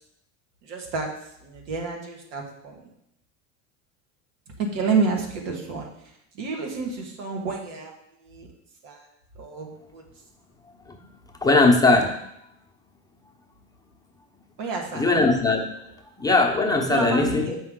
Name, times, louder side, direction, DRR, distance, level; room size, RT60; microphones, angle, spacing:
voice 1, 0.6-1.1 1.4-2.9 4.6-5.9 6.3-7.9 8.2-8.5 8.8-9.1 9.4-10.0 14.6-15.1 16.9-17.6, right 4 dB, 75° right, 1 dB, 1.9 m, -29 dB
voice 2, 11.4-12.3 14.9-15.8 16.2-17.5, left 3 dB, 10° left, 0 dB, 0.9 m, -20 dB
7.7 x 5.6 x 3.8 m, 0.77 s
supercardioid pair, 105°, 36 cm